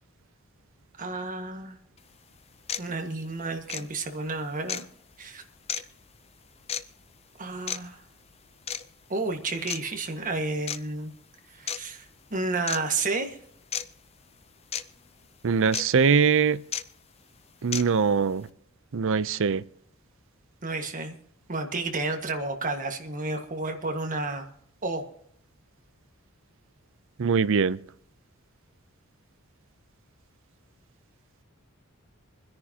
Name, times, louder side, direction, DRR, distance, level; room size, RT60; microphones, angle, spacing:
voice 1, 1.0-1.8 2.8-4.8 5.2-5.4 7.4-8.0 9.1-11.1 11.5-12.0 12.3-13.4 20.6-21.1 21.5-24.5 24.8-25.0, right 3 dB, 40° right, 1.6 m, -31 dB
sound 1, 2.0-2.1 2.7-2.9 3.7-3.8 4.7-4.8 5.7-5.8 6.7-6.8 7.7-7.8 8.7-8.8 9.7-9.8 10.7-10.8 11.7-11.8 12.7-12.8 13.7-13.8 14.7-14.8 15.7-15.8 16.7-16.8 17.7-17.8, left 8 dB, 30° left, 0.6 m, -31 dB
voice 2, 15.4-16.6 17.6-18.5 18.9-19.6 27.2-27.8, right 5 dB, 65° right, 0.5 m, -22 dB
26.0 x 10.5 x 2.9 m
head